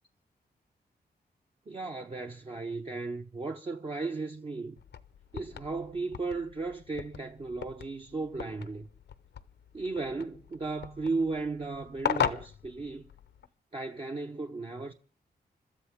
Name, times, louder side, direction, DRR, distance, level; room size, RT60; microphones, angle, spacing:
voice 1, 1.7-4.7 5.3-8.9 9.7-13.1 13.7-14.9, right 3 dB, 30° right, 0.8 m, -35 dB
sound 1, 4.8-13.5, left 8 dB, 85° left, 0.8 m, -38 dB
29.5 x 13.0 x 3.6 m
wide cardioid pair, 130°, 17 cm